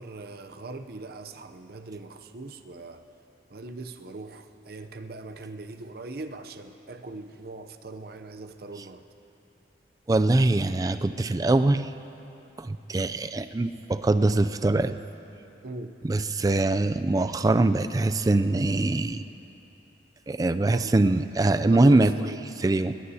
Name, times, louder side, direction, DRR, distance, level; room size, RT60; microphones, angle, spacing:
voice 1, 0.0-3.0 3.5-9.1 15.6-16.0 20.7-21.2 21.6-22.5, right 2 dB, 55° right, 8 dB, 0.6 m, -40 dB
voice 2, 10.1-11.9 12.6-15.0 16.0-19.2 20.3-22.1 22.6-22.9, right 2 dB, 20° right, 11 dB, 0.3 m, -23 dB
21.0 x 18.5 x 2.8 m, 3.0 s
head